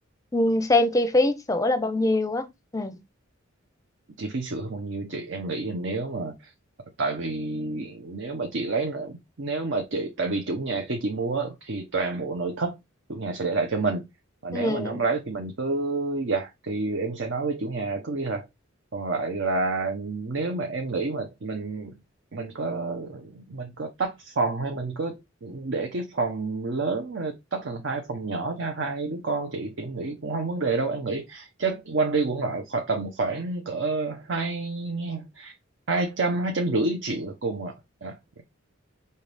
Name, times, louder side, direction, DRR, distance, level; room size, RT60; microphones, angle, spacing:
voice 1, 0.3-2.5 2.7-2.9 14.5-15.0, left 2 dB, 15° left, 0.5 m, -23 dB
voice 2, 4.2-6.5 7.0-12.8 13.1-14.1 14.4-18.5 18.9-22.0 22.3-35.5 35.9-37.8 38.0-38.4, right 3 dB, 60° right, 0.7 m, -29 dB
5.6 x 2.7 x 3.3 m
head